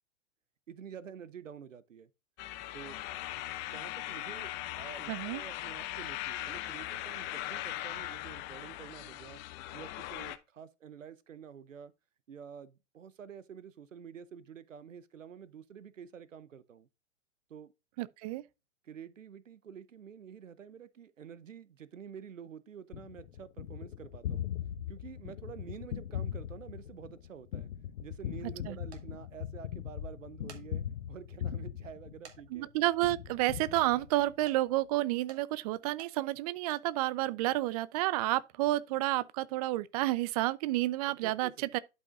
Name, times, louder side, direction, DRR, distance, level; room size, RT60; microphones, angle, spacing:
voice 1, 0.7-2.1 2.7-3.0 3.7-9.4 9.7-11.9 12.3-16.9 17.5-17.7 18.8-24.5 24.9-27.7 28.0-32.7 41.2-41.7, right 7 dB, 80° right, 0.8 m, -49 dB
sound 1, 2.4-10.4, left 14 dB, 30° left, 0.7 m, -40 dB
voice 2, 5.1-5.4 18.0-18.4 28.7-28.8 32.5-41.8, right 17 dB, 30° right, 0.4 m, -30 dB
Gunshot gunfire, 22.9-32.6 33.0-34.4, left 10 dB, 65° left, 0.8 m, -40 dB
sound 2, 28.9-29.0 30.2-30.6 31.2-31.3 32.2-32.4 32.7-32.8 33.8-33.9 34.4-34.6 35.3-35.4 36.0-36.1 36.6-36.8, right 7 dB, 60° right, 2.1 m, -52 dB
11.5 x 5.5 x 2.4 m
figure-of-eight pair, 105°, 38 cm